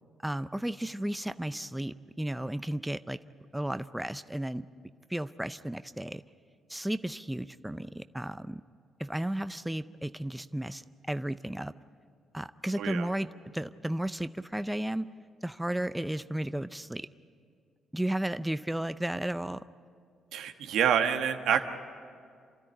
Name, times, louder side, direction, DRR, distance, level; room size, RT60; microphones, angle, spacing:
voice 1, 0.2-3.2 3.5-4.7 5.1-6.2 6.7-8.6 9.0-11.7 12.3-15.1 15.4-17.1 17.9-19.6, right 1 dB, 5° right, 12 dB, 0.5 m, -34 dB
voice 2, 12.8-13.1 20.3-21.6, right 8 dB, 80° right, 6 dB, 1.4 m, -27 dB
28.5 x 13.0 x 10.0 m, 2.2 s
cardioid pair, 90°, 0 cm